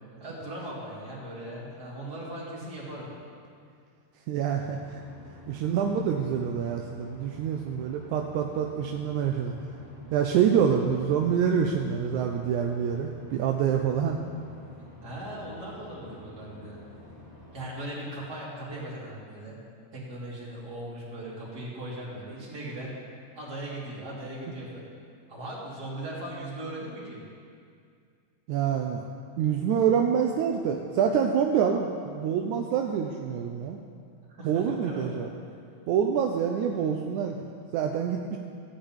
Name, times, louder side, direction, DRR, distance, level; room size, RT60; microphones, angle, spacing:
voice 1, 0.2-3.1 15.0-16.8 17.5-19.6 19.9-22.9 23.3-24.9 25.3-27.2 34.3-35.2, right 1 dB, 30° right, -7 dB, 3.3 m, -38 dB
voice 2, 4.3-5.0 5.5-9.5 10.1-14.2 28.5-29.0 29.4-33.8 34.4-35.3 35.9-38.4, right 7 dB, 80° right, 2 dB, 2.0 m, -26 dB
sound 1, 4.6-17.6, left 1 dB, 45° left, 3.0 m, -49 dB
15.5 x 5.2 x 8.8 m, 2.3 s
omnidirectional pair, 3.5 m